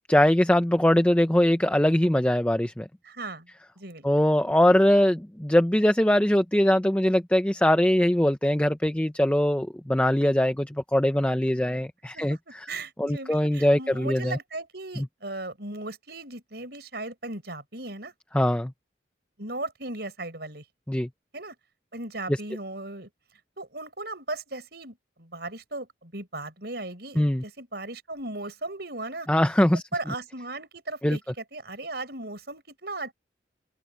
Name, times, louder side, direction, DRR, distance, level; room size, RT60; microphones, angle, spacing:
voice 1, 0.1-2.9 4.0-12.6 13.0-14.4 15.0-15.1 18.3-18.7 20.9-21.1 27.2-27.4 29.3-29.8 31.0-31.2, left 1 dB, 5° left, 0.5 m, -22 dB
voice 2, 3.0-3.5 3.8-4.0 12.1-18.1 19.4-20.6 21.3-21.6 21.9-23.1 23.6-29.3 29.7-33.1, right 2 dB, 60° right, 5.8 m, -37 dB
open air
head